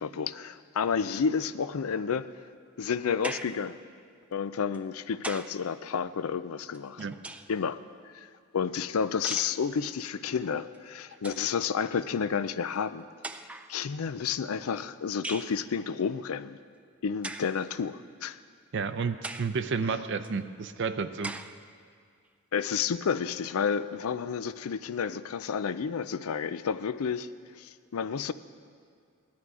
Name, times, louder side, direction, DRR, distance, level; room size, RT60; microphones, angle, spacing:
voice 1, 0.0-2.3 2.8-3.8 4.3-7.1 7.5-7.8 8.1-8.3 8.5-13.0 13.7-16.6 17.0-18.4 22.5-27.3 27.6-28.3, left 6 dB, 85° left, 14 dB, 0.5 m, -30 dB
sound 1, 3.2-3.7 4.7-5.6 6.7-7.7 9.2-9.6 10.7-10.8 11.1-11.5 12.5-12.6 13.2-13.7 15.2-15.6 17.2-17.6 18.2-18.3 19.2-19.6 20.2-20.3 21.2-21.6, right 2 dB, 5° right, 0.3 m, -39 dB
voice 2, 18.7-21.4, right 5 dB, 60° right, 10 dB, 0.5 m, -31 dB
17.0 x 11.5 x 4.8 m, 2.2 s
head